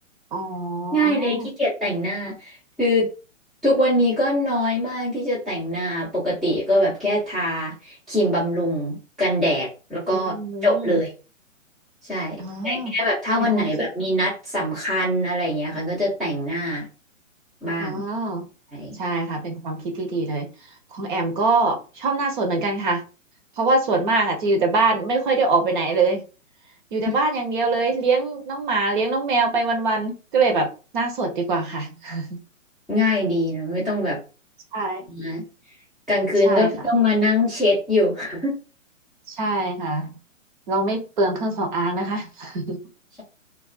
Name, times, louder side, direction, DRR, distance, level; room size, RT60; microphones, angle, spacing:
voice 1, 0.3-1.5 10.3-11.0 12.4-12.9 13.4-13.7 17.8-18.5 19.0-20.5 20.9-23.0 23.6-26.2 26.9-30.7 30.9-32.4 34.7-35.0 36.5-36.7 39.3-40.1 40.7-42.8, right 3 dB, 40° right, 3 dB, 0.7 m, -24 dB
voice 2, 0.9-3.1 3.6-11.1 12.0-16.9 17.6-18.0 18.7-18.9 27.0-27.1 32.9-34.2 35.1-35.4 36.1-38.6, left 1 dB, ahead, -11 dB, 0.5 m, -23 dB
2.3 x 2.3 x 2.3 m, 0.33 s
hypercardioid pair, 135°, 39 cm